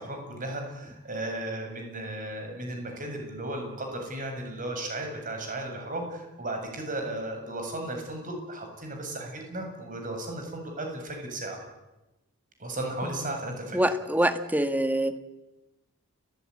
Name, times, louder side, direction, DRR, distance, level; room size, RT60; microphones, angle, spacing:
voice 1, 0.0-11.6 12.6-13.9, right 1 dB, 35° right, 3 dB, 7.5 m, -35 dB
voice 2, 13.7-15.2, right 1 dB, 5° right, 9 dB, 1.5 m, -25 dB
30.0 x 16.5 x 9.9 m, 1.0 s
head